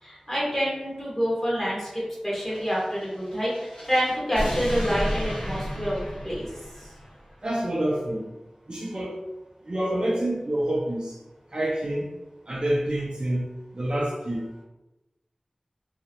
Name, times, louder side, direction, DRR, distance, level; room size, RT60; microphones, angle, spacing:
voice 1, 0.0-6.5, equal, 20° left, -6 dB, 1.1 m, -27 dB
sound 1, 2.4-7.1, equal, 70° left, 1.3 m, -33 dB
voice 2, 7.4-8.3 8.7-9.2 9.7-11.2 11.5-12.1 12.5-13.5 13.7-14.5, right 1 dB, 45° right, -2 dB, 0.5 m, -27 dB
2.7 x 2.0 x 2.9 m, 1.0 s
wide cardioid pair, 45°, 2 cm